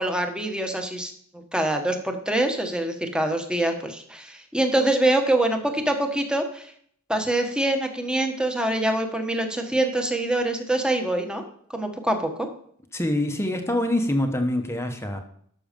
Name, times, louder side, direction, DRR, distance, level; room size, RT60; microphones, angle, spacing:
voice 1, 0.0-6.7 7.1-11.4 11.7-12.5, right 1 dB, 5° right, 4 dB, 1.3 m, -25 dB
voice 2, 12.9-15.2, left 1 dB, 10° left, 5 dB, 1.0 m, -25 dB
12.5 x 6.3 x 5.2 m, 0.62 s
head